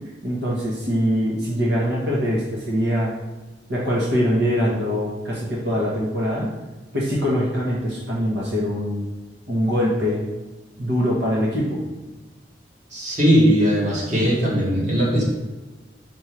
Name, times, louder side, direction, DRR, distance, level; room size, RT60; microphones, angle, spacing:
voice 1, 0.2-3.1 3.7-6.5 6.9-9.0 9.5-10.2 10.8-11.8, equal, 75° right, -5 dB, 1.3 m, -23 dB
voice 2, 12.9-15.2, equal, 40° right, -5 dB, 1.8 m, -19 dB
4.6 x 4.4 x 4.7 m, 1.2 s
head